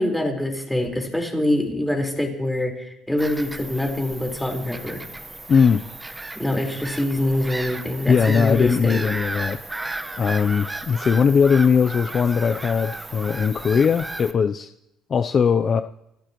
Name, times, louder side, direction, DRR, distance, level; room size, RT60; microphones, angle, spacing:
voice 1, 0.0-5.0 6.3-9.0, left 1 dB, 5° left, 1 dB, 4.3 m, -25 dB
Bird vocalization bird call bird song / Gull seagull, 3.2-14.3, right 2 dB, 10° right, 1.2 m, -34 dB
voice 2, 5.5-5.8 8.1-9.6 10.2-14.7 15.1-15.8, left 6 dB, 40° left, 9 dB, 0.6 m, -19 dB
30.0 x 15.0 x 3.1 m, 0.89 s
cardioid pair, 110°, 0 cm